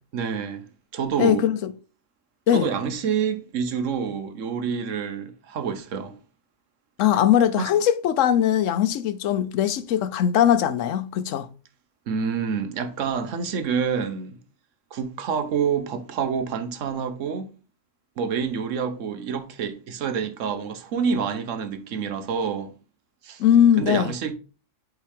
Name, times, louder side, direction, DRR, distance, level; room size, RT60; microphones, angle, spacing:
voice 1, 0.1-0.6 0.9-1.4 2.5-6.2 7.6-7.7 12.1-14.4 14.9-17.5 18.2-22.7 23.2-23.4 23.8-24.3, right 6 dB, 80° right, 1.2 m, -27 dB
voice 2, 1.2-1.7 2.5-2.7 7.0-11.5 23.4-24.1, left 10 dB, 80° left, 1.0 m, -20 dB
8.4 x 3.7 x 3.4 m
omnidirectional pair, 1.3 m